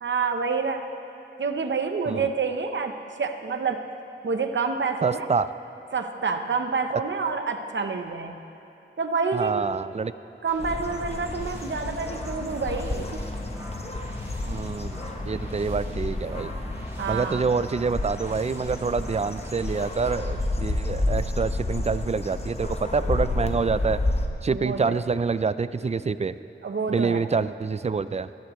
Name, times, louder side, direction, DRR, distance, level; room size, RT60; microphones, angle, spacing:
voice 1, 0.0-0.9 1.4-3.9 4.2-5.3 5.9-8.4 9.0-9.6 10.4-13.2 17.0-17.5 24.5-25.0 26.6-27.3, right 5 dB, 70° right, 6 dB, 0.9 m, -28 dB
voice 2, 5.0-5.5 9.3-10.1 14.5-15.0 15.2-16.5 17.1-24.0 24.4-26.3 26.9-28.3, right 5 dB, 35° right, 14 dB, 0.4 m, -26 dB
sound 1, 10.5-20.4, equal, 10° right, 3.5 m, -45 dB
sound 2, 10.6-24.3, left 2 dB, 30° left, 1.0 m, -30 dB
21.0 x 14.5 x 3.1 m, 2.8 s
wide cardioid pair, 90°, 20 cm